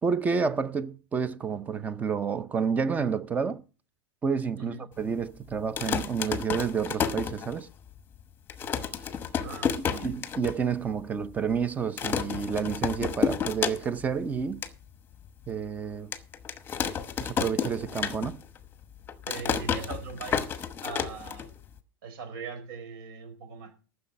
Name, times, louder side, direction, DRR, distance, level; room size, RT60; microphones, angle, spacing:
voice 1, 0.0-3.6 4.2-7.7 9.8-14.6 15.5-16.1 17.2-18.4, right 6 dB, 15° right, 0.5 m, -29 dB
voice 2, 4.6-4.9 8.6-8.7 9.4-10.2 19.3-20.6 20.8-21.5 22.0-23.7, right 5 dB, 65° right, 4.6 m, -40 dB
sound 1, 5.6-7.9 8.2-8.3 8.5-10.6 10.9-11.0 11.2-11.6 12.0-14.1 14.4-14.7 15.3-15.4 16.1-18.6 18.8-21.8, left 7 dB, 15° left, 1.0 m, -31 dB
14.0 x 6.6 x 5.7 m
supercardioid pair, 160°, 12 cm